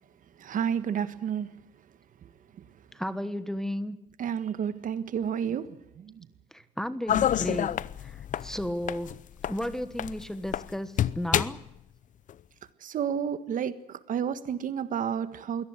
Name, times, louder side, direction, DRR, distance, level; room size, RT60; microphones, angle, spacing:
voice 1, 0.4-1.5 4.2-6.3 12.8-15.6, right 8 dB, 50° right, 13 dB, 1.5 m, -31 dB
voice 2, 2.9-4.0 6.5-7.7 8.0-8.2 8.4-9.1 9.5-11.6, equal, 5° left, 12 dB, 1.2 m, -33 dB
sound 1, 7.1-10.7 11.0-11.7 12.3-12.4, left 10 dB, 50° left, 0.7 m, -28 dB
22.5 x 18.0 x 8.1 m, 0.88 s
cardioid pair, 110°, 17 cm